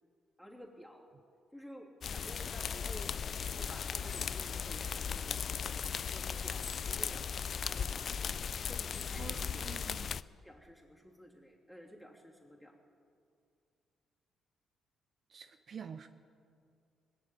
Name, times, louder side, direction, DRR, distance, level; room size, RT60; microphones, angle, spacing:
voice 1, 0.4-1.1 1.5-3.1 3.4-8.2 8.7-9.6 10.4-12.8, equal, ahead, -2 dB, 2.9 m, -52 dB
sound 1, 2.0-10.2, left 7 dB, 50° left, 0.3 m, -37 dB
voice 2, 9.2-10.2 15.3-16.1, right 7 dB, 50° right, 9 dB, 0.6 m, -47 dB
21.0 x 7.5 x 9.1 m, 2.4 s
cardioid pair, 90°, 0 cm